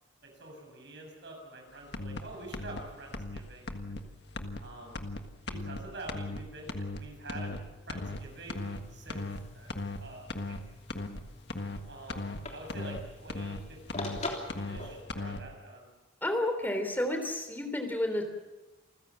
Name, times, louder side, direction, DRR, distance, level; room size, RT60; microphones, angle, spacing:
voice 1, 0.2-4.0 4.6-5.0 5.5-7.6 7.9-10.6 11.9-14.2 14.5-15.9, right 2 dB, 60° right, 1 dB, 7.5 m, -46 dB
sound 1, 1.9-2.2 2.5-2.8 3.1-3.4 3.7-4.0 4.3-4.6 4.9-5.2 5.5-5.8 6.1-6.4 6.7-7.0 7.3-7.6 7.9-8.2 8.5-8.8 9.1-9.4 9.7-10.0 10.3-10.6 10.9-11.2 11.5-11.8 12.1-12.4 12.7-13.0 13.3-13.6 13.9-14.2 14.5-14.8 15.1-15.4, left 2 dB, 60° left, 1.7 m, -37 dB
sound 2, 8.2-15.0, left 2 dB, 35° left, 3.3 m, -44 dB
voice 2, 16.2-18.2, left 1 dB, 10° left, 6 dB, 3.3 m, -31 dB
28.0 x 15.5 x 7.4 m, 1.1 s
head